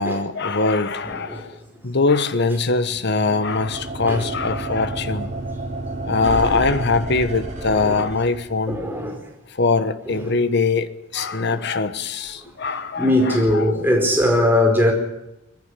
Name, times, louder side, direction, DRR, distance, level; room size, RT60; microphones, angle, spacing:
voice 1, 0.0-1.5 1.8-5.3 6.0-8.8 9.6-13.6, left 3 dB, 55° left, 1.2 m, -22 dB
voice 2, 1.0-1.5 4.1-4.3 6.2-6.6 7.7-8.1 8.7-9.2 10.1-10.4 11.3-11.6 12.6-14.9, left 1 dB, 10° right, 4.5 m, -21 dB
sound 1, 3.2-8.7, right 2 dB, 35° right, 5.5 m, -30 dB
20.5 x 15.5 x 10.0 m
head